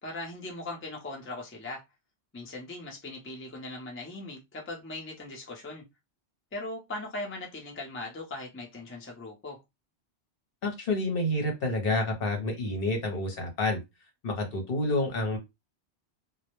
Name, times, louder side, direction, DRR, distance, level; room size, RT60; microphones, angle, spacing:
voice 1, 0.0-1.8 2.3-5.8 6.5-9.6, left 2 dB, 15° left, 0.5 m, -39 dB
voice 2, 10.6-13.8 14.2-15.4, left 2 dB, 60° left, 0.9 m, -28 dB
2.2 x 2.1 x 2.9 m
omnidirectional pair, 1.1 m